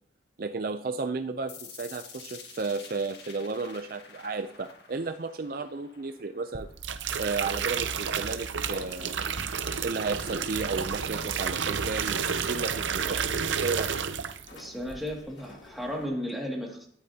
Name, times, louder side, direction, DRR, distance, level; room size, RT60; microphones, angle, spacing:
voice 1, 0.4-6.7 7.2-9.3 9.8-14.0, right 4 dB, 50° right, 9 dB, 0.5 m, -33 dB
sound 1, 1.5-7.5, left 6 dB, 65° left, 1.7 m, -49 dB
sound 2, 6.5-14.6 14.9-15.2, right 6 dB, 90° right, 0.7 m, -31 dB
sound 3, 8.0-16.1, left 1 dB, 85° left, 2.3 m, -49 dB
voice 2, 14.5-16.9, equal, ahead, -2 dB, 2.2 m, -34 dB
12.5 x 11.0 x 2.8 m, 0.62 s
head